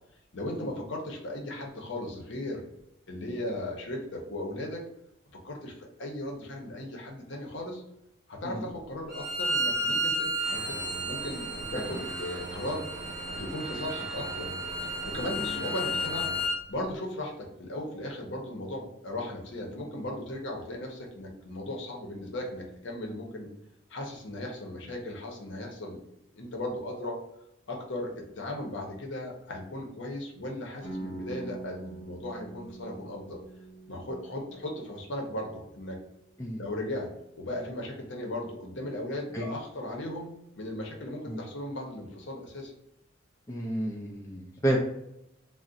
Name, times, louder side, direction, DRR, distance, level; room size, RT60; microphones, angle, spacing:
voice 1, 0.3-2.7 3.1-4.9 5.3-7.8 8.3-10.8 11.0-12.9 13.4-14.6 15.0-16.3 16.7-23.5 23.9-27.2 27.7-33.4 33.9-36.0 36.6-37.1 37.4-42.7, left 1 dB, 70° left, 0 dB, 0.7 m, -37 dB
Bowed string instrument, 9.1-16.6, equal, ahead, 0.8 m, -32 dB
sound 1, 10.4-16.5, right 1 dB, 55° right, 0.6 m, -41 dB
sound 2, 30.8-36.6, right 2 dB, 30° left, 1.3 m, -44 dB
voice 2, 43.5-44.8, right 1 dB, 15° left, -2 dB, 0.3 m, -31 dB
2.5 x 2.0 x 3.8 m, 0.82 s
head